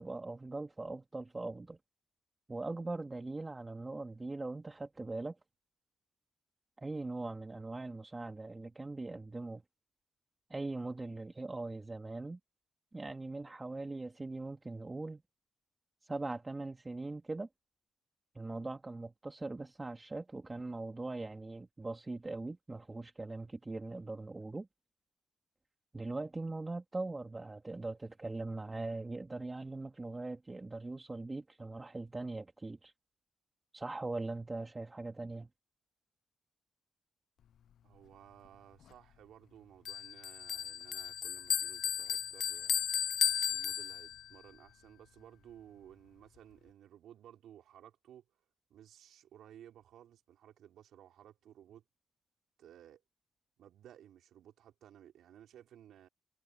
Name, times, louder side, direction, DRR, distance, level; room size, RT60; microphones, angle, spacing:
voice 1, 0.0-1.8 2.5-5.4 6.8-9.6 10.5-12.4 12.9-15.2 16.0-17.5 18.3-24.7 25.9-32.9 33.7-35.5, right 2 dB, 25° right, 2.7 m, -41 dB
voice 2, 37.8-42.8 43.5-48.2 48.7-51.8 52.6-53.0 53.6-56.1, right 10 dB, 75° right, 3.8 m, -57 dB
Bell, 39.9-44.4, left 9 dB, 70° left, 0.8 m, -34 dB
supercardioid pair, 50°, 0 cm